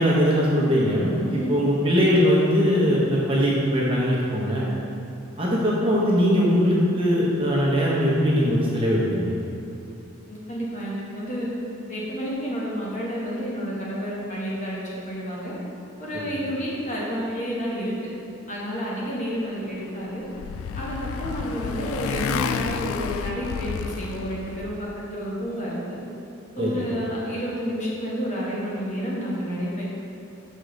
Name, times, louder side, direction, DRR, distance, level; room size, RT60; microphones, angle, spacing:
voice 1, 0.0-1.1 1.5-4.7 5.4-9.4 26.6-26.7, equal, 25° right, -5 dB, 1.0 m, -21 dB
voice 2, 1.2-1.5 10.3-11.5 11.9-15.5 16.0-17.9 18.5-20.2 20.7-26.0 26.5-29.9, equal, 35° left, -5 dB, 1.2 m, -30 dB
Motorcycle, 19.8-24.9, left 6 dB, 90° left, 0.3 m, -30 dB
6.9 x 4.9 x 3.9 m, 2.8 s
head